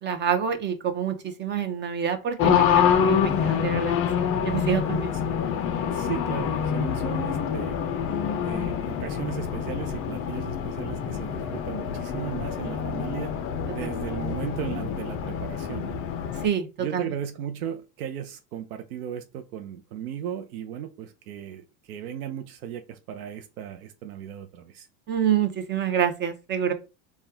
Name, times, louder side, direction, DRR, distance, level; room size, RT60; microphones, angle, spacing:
voice 1, 0.0-3.9 4.4-5.1 13.8-13.9 16.4-17.1 25.1-26.7, right 8 dB, 25° right, 0.7 m, -27 dB
Race car auto racing, 2.4-16.5, left 7 dB, 35° left, 0.5 m, -26 dB
voice 2, 5.9-7.8 8.4-13.3 13.7-16.0 16.8-24.9, right 9 dB, 90° right, 0.6 m, -36 dB
4.2 x 2.3 x 3.4 m
supercardioid pair, 120°, 42 cm